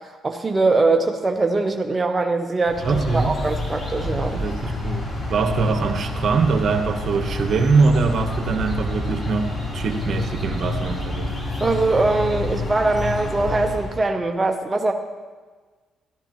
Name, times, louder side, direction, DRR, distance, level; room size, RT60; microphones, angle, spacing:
voice 1, 0.2-4.4 11.6-14.9, right 3 dB, 25° right, 3 dB, 0.7 m, -22 dB
sound 1, 2.6-14.0, left 2 dB, 40° left, 3.6 m, -28 dB
voice 2, 2.8-3.4 4.4-11.3, right 4 dB, 60° right, 5 dB, 1.2 m, -22 dB
14.5 x 12.0 x 3.1 m, 1.4 s
cardioid pair, 90°, 0 cm